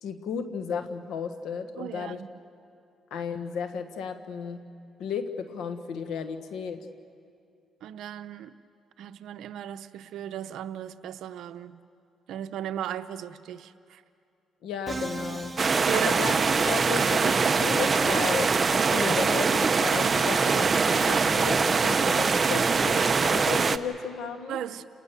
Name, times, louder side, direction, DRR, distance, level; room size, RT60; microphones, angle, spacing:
voice 1, 0.0-2.2 3.1-4.6 5.0-6.9 14.6-16.3 16.7-24.6, left 6 dB, 80° left, 9 dB, 1.4 m, -34 dB
voice 2, 1.8-2.3 7.8-8.6 9.0-11.9 12.3-14.0 15.8-16.2 16.9-17.4 24.5-24.8, right 10 dB, 80° right, 11 dB, 0.7 m, -36 dB
Musical instrument, 14.9-16.9, right 2 dB, 15° right, 1.8 m, -38 dB
sound 1, 15.6-23.8, right 5 dB, 35° right, 0.7 m, -23 dB
29.5 x 19.0 x 6.9 m, 2.4 s
cardioid pair, 90°, 0 cm